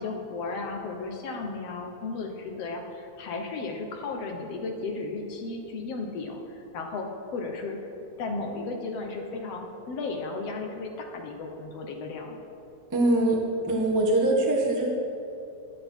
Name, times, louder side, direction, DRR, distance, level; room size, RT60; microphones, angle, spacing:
voice 1, 0.0-7.8 8.2-12.4, left 3 dB, 65° left, 2 dB, 2.0 m, -34 dB
voice 2, 12.9-13.4 13.6-14.9, right 2 dB, 15° right, -2 dB, 0.7 m, -23 dB
14.0 x 10.0 x 4.5 m, 2.7 s
omnidirectional pair, 3.4 m